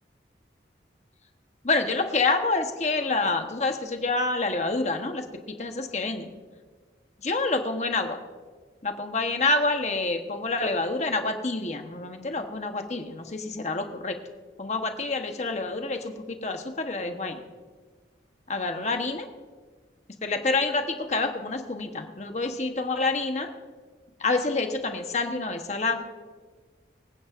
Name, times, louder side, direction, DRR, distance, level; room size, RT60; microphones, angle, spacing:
voice 1, 1.6-6.3 7.2-8.2 8.8-14.2 14.6-17.4 18.5-19.3 20.2-23.5 24.2-26.0, left 3 dB, 40° left, 5 dB, 1.0 m, -27 dB
24.5 x 9.4 x 2.5 m, 1.4 s
head